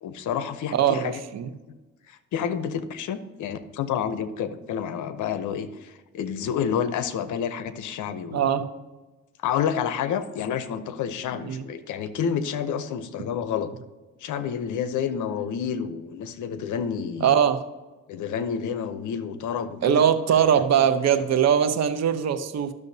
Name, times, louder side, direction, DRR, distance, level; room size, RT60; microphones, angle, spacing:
voice 1, 0.0-1.2 1.5-1.7 2.1-8.5 9.4-13.7 14.2-17.4 18.1-20.0, left 8 dB, 80° left, 11 dB, 0.8 m, -29 dB
voice 2, 0.7-1.5 8.3-8.6 11.4-11.7 17.2-17.6 19.8-22.7, right 8 dB, 60° right, 9 dB, 0.9 m, -21 dB
12.0 x 6.5 x 2.8 m, 1.2 s
cardioid pair, 90°, 30 cm